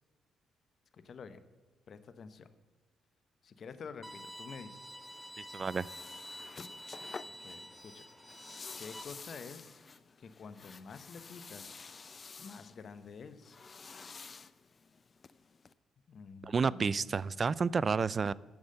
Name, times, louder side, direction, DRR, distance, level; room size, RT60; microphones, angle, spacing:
voice 1, 0.9-1.4 1.9-2.5 3.4-4.9 7.4-8.1 8.8-9.8 10.2-11.7 12.4-13.6 16.1-17.4, left 5 dB, 55° left, 12 dB, 0.8 m, -49 dB
Bowed string instrument, 4.0-9.0, equal, 5° left, 0.7 m, -48 dB
sound 1, 5.0-15.7, left 4 dB, 35° left, 0.4 m, -51 dB
voice 2, 5.4-5.9 16.4-18.3, right 5 dB, 40° right, 20 dB, 0.3 m, -30 dB
10.5 x 7.3 x 6.5 m, 1.4 s
cardioid pair, 90°, 0 cm